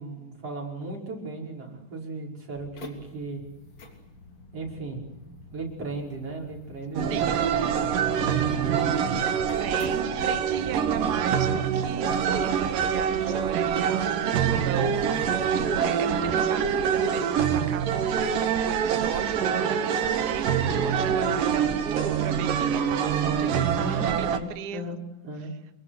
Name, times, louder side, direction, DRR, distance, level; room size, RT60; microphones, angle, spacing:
voice 1, 0.0-3.4 4.5-5.0 5.5-9.2 14.7-15.6 23.8-25.0 25.2-25.5, right 2 dB, 45° right, -1 dB, 6.5 m, -36 dB
sound 1, 2.5-10.8, left 3 dB, 55° left, 4.3 m, -48 dB
sound 2, 7.0-24.4, right 7 dB, 90° right, 3.4 m, -25 dB
voice 2, 9.6-14.9 15.6-24.9, right 9 dB, 65° right, 11 dB, 0.9 m, -36 dB
27.5 x 22.5 x 8.1 m, 0.89 s
omnidirectional pair, 3.7 m